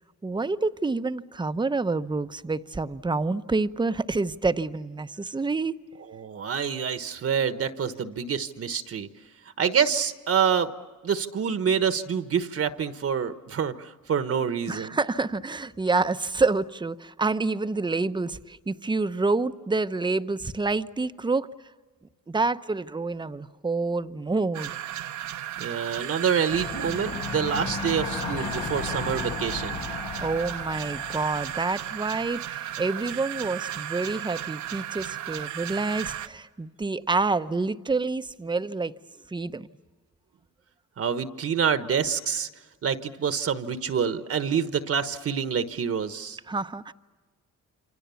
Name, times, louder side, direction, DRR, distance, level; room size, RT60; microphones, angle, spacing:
voice 1, 0.2-5.8 14.7-21.5 22.3-24.7 30.2-38.9 39.3-39.7 46.5-46.9, right 3 dB, 15° right, 12 dB, 0.9 m, -28 dB
voice 2, 6.1-9.1 9.6-10.7 11.0-14.9 25.6-29.8 41.0-42.5 42.8-46.4, right 7 dB, 50° right, 10 dB, 1.3 m, -27 dB
sound 1, 24.5-36.3, right 12 dB, 75° right, 1.1 m, -35 dB
sound 2, 26.5-32.0, left 5 dB, 90° left, 3.9 m, -35 dB
28.0 x 26.0 x 7.1 m, 1.4 s
cardioid pair, 90°, 30 cm